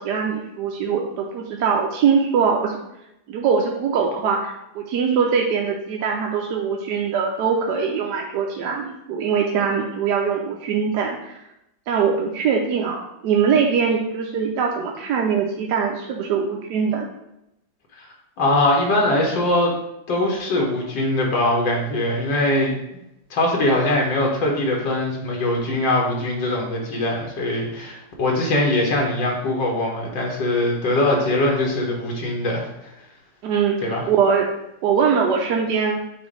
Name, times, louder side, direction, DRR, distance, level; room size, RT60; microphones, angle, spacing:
voice 1, 0.0-2.7 3.3-11.4 11.9-17.1 33.4-33.8 34.1-34.5 34.8-36.0, right 6 dB, 70° right, 0 dB, 1.2 m, -22 dB
voice 2, 18.4-19.7 20.1-22.7 23.3-32.7 33.8-34.0, left 1 dB, 80° left, -1 dB, 1.9 m, -21 dB
7.0 x 2.6 x 5.1 m, 0.86 s
omnidirectional pair, 2.0 m